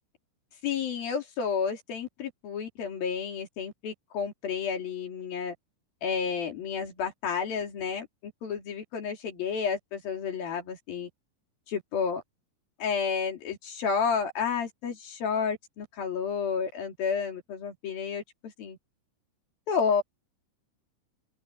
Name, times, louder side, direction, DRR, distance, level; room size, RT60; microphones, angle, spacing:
voice 1, 0.6-5.6 6.0-11.1 11.7-12.2 12.8-18.8 19.7-20.0, left 6 dB, 85° left, 5.1 m, -31 dB
omnidirectional pair, 4.1 m